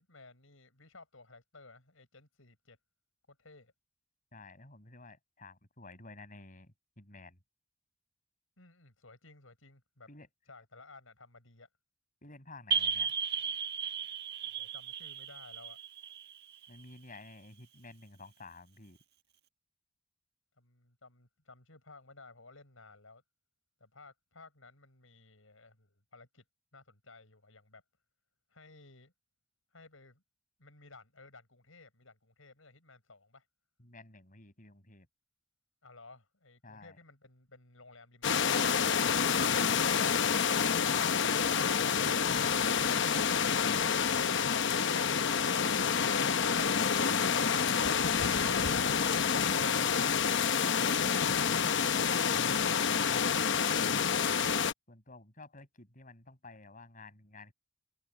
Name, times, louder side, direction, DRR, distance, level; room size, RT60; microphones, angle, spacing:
voice 1, 0.0-2.8 3.3-3.7 8.6-10.1 10.5-11.7 14.5-15.8 20.6-23.2 23.8-26.4 26.7-27.8 28.5-29.1 29.7-30.2 30.6-33.5 35.8-38.8, left 3 dB, 85° left, 7.2 m, -56 dB
voice 2, 4.3-7.4 10.1-10.3 12.2-13.1 16.7-19.0 33.8-35.1 36.6-37.0 52.4-52.7 53.1-54.2 54.9-57.5, left 3 dB, 40° left, 7.2 m, -52 dB
sound 1, 12.7-17.1, right 6 dB, 55° right, 1.6 m, -35 dB
sound 2, 38.2-54.7, left 6 dB, 60° left, 0.9 m, -28 dB
head